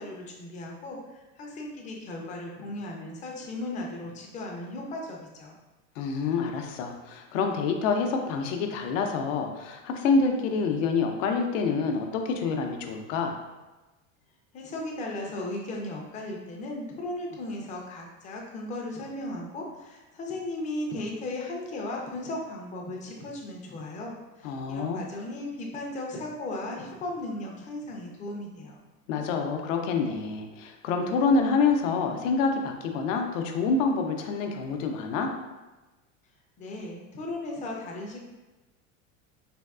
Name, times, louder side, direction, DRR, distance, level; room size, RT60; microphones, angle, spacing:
voice 1, 0.0-5.6 14.5-28.8 36.6-38.2, left 1 dB, 20° left, -1 dB, 0.3 m, -36 dB
voice 2, 6.0-13.4 24.4-25.0 29.1-35.3, left 4 dB, 80° left, 4 dB, 0.5 m, -27 dB
3.4 x 2.3 x 2.3 m, 1.1 s
supercardioid pair, 130°, 38 cm